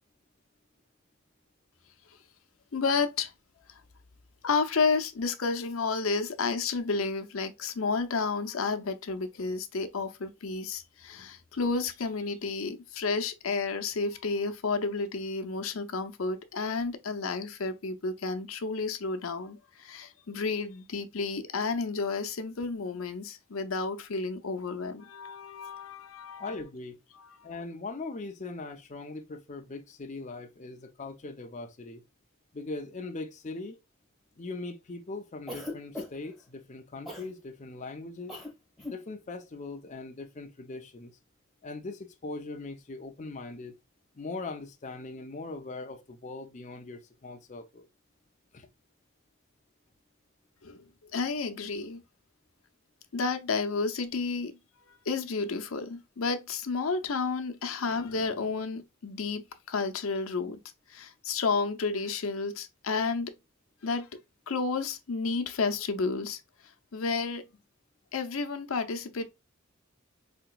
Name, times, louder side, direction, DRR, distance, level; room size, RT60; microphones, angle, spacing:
voice 1, 2.7-3.3 4.4-26.5 27.1-27.3 50.6-50.9 51.1-52.0 53.1-54.6 55.1-60.6 60.9-63.3 63.8-64.1 64.5-66.4 66.9-67.4 68.1-69.3, left 4 dB, 85° left, 0.7 m, -31 dB
voice 2, 26.4-27.0 27.4-32.0 32.5-33.8 34.4-38.4 38.9-41.2 41.6-43.8 44.1-47.9 48.5-48.7, left 3 dB, 35° left, 0.5 m, -40 dB
Cough, 35.5-36.3 37.1-37.3 38.3-38.5 38.8-39.0, left 2 dB, ahead, 1.3 m, -39 dB
4.2 x 2.9 x 2.3 m
head